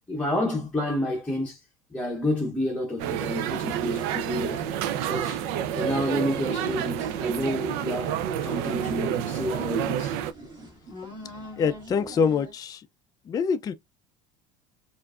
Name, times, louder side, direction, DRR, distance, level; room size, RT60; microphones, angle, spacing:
voice 1, 0.1-1.6 1.9-4.6 5.0-5.4 5.7-10.2, left 1 dB, 5° left, 0.8 m, -29 dB
sound 1, 3.0-10.3, right 9 dB, 70° right, 0.5 m, -29 dB
sound 2, 6.2-12.5, left 1 dB, 25° right, 1.9 m, -45 dB
voice 2, 11.6-12.9 13.3-13.7, left 6 dB, 20° left, 0.4 m, -25 dB
4.5 x 2.5 x 2.4 m
supercardioid pair, 130°, 17 cm